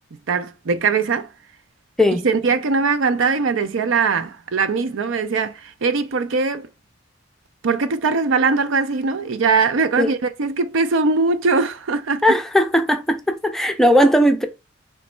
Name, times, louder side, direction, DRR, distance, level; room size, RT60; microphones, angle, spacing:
voice 1, 0.1-1.3 2.2-6.7 7.6-12.4, right 4 dB, 85° right, 0.5 m, -21 dB
voice 2, 12.2-14.5, equal, ahead, 0.4 m, -17 dB
3.1 x 3.1 x 4.4 m
head